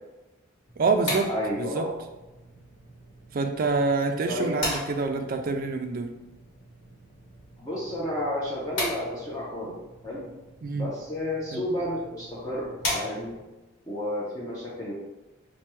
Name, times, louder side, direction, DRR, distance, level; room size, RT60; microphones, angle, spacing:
sound 1, 0.7-13.6, left 1 dB, 60° left, 1.3 m, -38 dB
voice 1, 0.8-1.3 1.6-1.9 3.3-6.1 10.6-10.9 11.5-11.6, right 4 dB, 45° right, 5 dB, 0.3 m, -26 dB
voice 2, 1.3-1.9 4.3-4.8 7.6-9.8 10.0-10.2 10.7-12.7 12.9-13.3 13.9-14.9, left 1 dB, 15° left, -7 dB, 0.6 m, -31 dB
4.3 x 2.2 x 3.0 m, 1.0 s
head